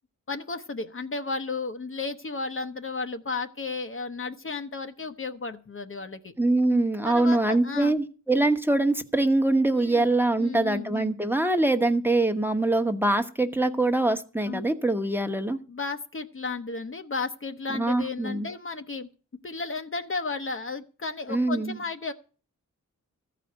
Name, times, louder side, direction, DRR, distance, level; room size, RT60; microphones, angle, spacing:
voice 1, 0.3-6.3 7.0-7.9 9.7-10.1 10.4-11.1 14.4-14.6 15.7-19.1 19.4-22.1, left 4 dB, 40° left, 8 dB, 0.9 m, -33 dB
voice 2, 6.4-15.6 17.7-18.5 21.3-21.8, right 2 dB, 5° right, 6 dB, 1.1 m, -24 dB
14.5 x 5.0 x 9.0 m, 0.39 s
wide cardioid pair, 75°, 32 cm